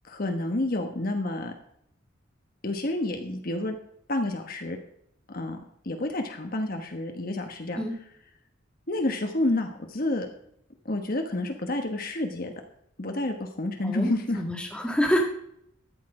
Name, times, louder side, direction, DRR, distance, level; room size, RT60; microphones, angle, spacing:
voice 1, 0.1-1.5 2.6-3.8 4.1-4.8 5.3-5.6 5.8-7.8 8.9-10.3 10.8-12.5 13.0-14.4, left 1 dB, 45° left, 4 dB, 1.2 m, -29 dB
voice 2, 14.4-15.3, equal, 5° left, 0 dB, 1.8 m, -26 dB
13.0 x 8.5 x 4.9 m, 0.71 s
head